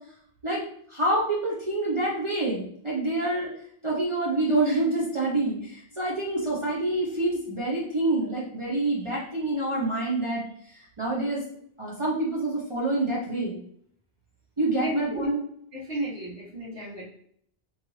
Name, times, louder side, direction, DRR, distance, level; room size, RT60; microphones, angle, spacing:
voice 1, 0.9-3.5 3.8-11.4 11.8-13.6 14.6-15.4, right 2 dB, 35° right, -5 dB, 0.6 m, -27 dB
voice 2, 14.7-15.3 15.7-17.1, right 1 dB, 70° right, -10 dB, 1.4 m, -34 dB
3.0 x 2.5 x 3.1 m, 0.65 s
omnidirectional pair, 1.1 m